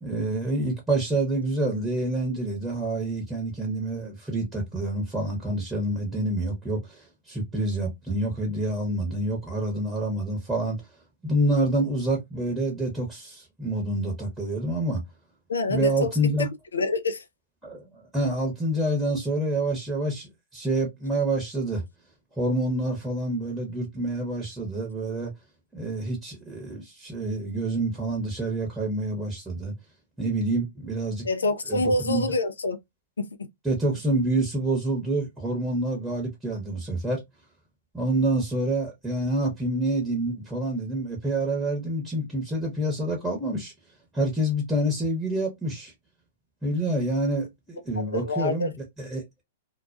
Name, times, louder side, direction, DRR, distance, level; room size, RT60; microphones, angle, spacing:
voice 1, 0.0-10.9 11.2-15.0 15.7-16.5 17.6-21.8 22.4-25.3 25.7-29.7 30.2-31.2 31.7-32.2 33.6-37.2 37.9-43.7 44.1-45.9 46.6-48.7 49.0-49.2, right 1 dB, 5° right, 0.9 m, -27 dB
voice 2, 15.5-17.2 31.2-32.8 33.2-33.3 47.9-48.7, left 2 dB, 85° left, 0.4 m, -27 dB
2.2 x 2.2 x 2.5 m
hypercardioid pair, 120°, 0 cm